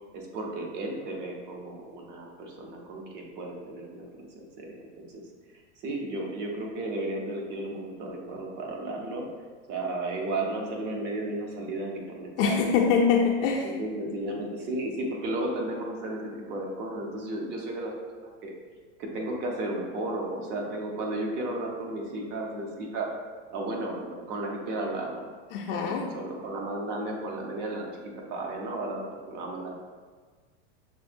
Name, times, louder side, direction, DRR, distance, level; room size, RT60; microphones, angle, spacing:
voice 1, 0.1-5.2 5.8-9.3 9.7-13.2 13.6-17.9 18.2-18.5 19.0-23.1 23.5-25.3 25.7-29.8, right 2 dB, 30° right, 0 dB, 0.6 m, -34 dB
voice 2, 12.4-13.7 25.5-26.0, left 6 dB, 50° left, -1 dB, 0.5 m, -24 dB
6.2 x 2.1 x 2.5 m, 1.5 s
supercardioid pair, 150°, 36 cm